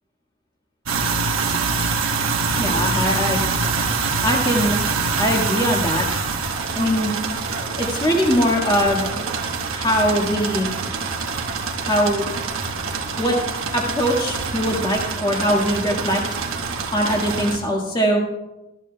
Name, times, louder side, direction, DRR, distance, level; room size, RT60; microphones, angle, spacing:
sound 1, 0.9-17.6, right 4 dB, 75° right, 1.2 m, -25 dB
voice 1, 2.6-3.4 4.2-4.8 5.2-6.0 6.7-7.1 7.8-9.2 9.7-10.7 11.8-12.2 13.2-13.4 13.7-16.2 16.9-18.2, equal, 20° left, -1 dB, 1.7 m, -21 dB
15.0 x 11.5 x 2.3 m, 0.97 s
head